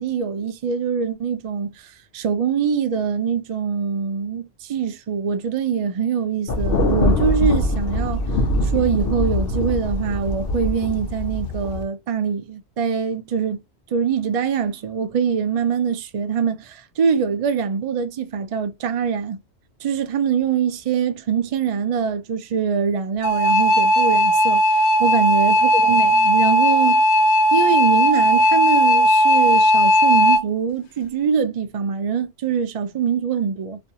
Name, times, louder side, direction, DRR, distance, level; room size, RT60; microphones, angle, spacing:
voice 1, 0.0-8.2 8.6-13.6 13.9-19.4 19.8-24.6 25.0-27.0 27.5-33.8, right 7 dB, 55° right, 0.4 m, -23 dB
Thunder, 6.5-11.8, left 1 dB, 65° left, 0.8 m, -23 dB
sound 1, 23.2-30.4, equal, 90° left, 1.0 m, -16 dB
2.5 x 2.3 x 2.7 m
omnidirectional pair, 1.1 m